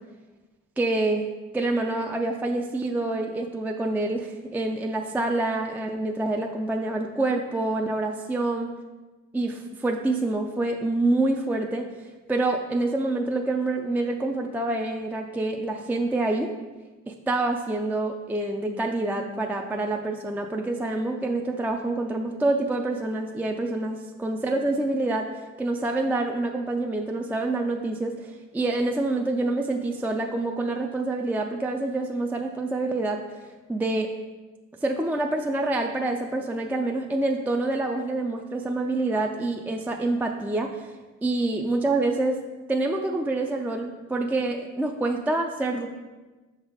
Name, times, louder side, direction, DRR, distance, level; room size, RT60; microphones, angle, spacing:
voice 1, 0.8-1.3 1.5-8.7 9.3-11.9 12.3-16.5 17.1-33.2 33.7-34.1 34.8-40.9 41.2-42.4 42.7-45.9, right 2 dB, 5° right, 3 dB, 0.4 m, -27 dB
5.9 x 4.1 x 4.8 m, 1.2 s
cardioid pair, 90°, 30 cm